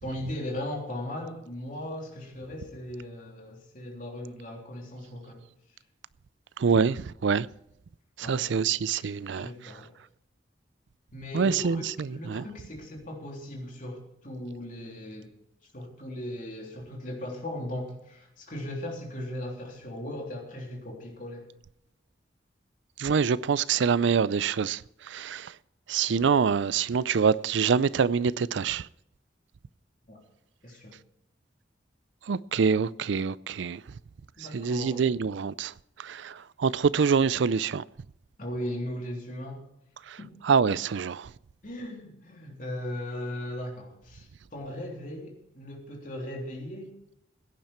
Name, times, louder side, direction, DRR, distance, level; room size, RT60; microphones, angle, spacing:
voice 1, 0.0-5.5 8.2-9.0 9.3-9.9 11.1-15.3 15.7-21.5 30.1-30.2 30.6-30.9 34.4-35.1 38.4-39.6 40.2-40.3 41.6-46.9, left 1 dB, 40° left, 3.4 m, -38 dB
voice 2, 6.6-7.5 8.2-9.5 11.3-12.4 23.0-25.5 25.9-28.9 32.3-33.8 34.5-35.7 36.0-37.8 40.1-40.2 40.4-41.3, right 6 dB, 70° right, 0.4 m, -25 dB
16.5 x 10.5 x 4.4 m
head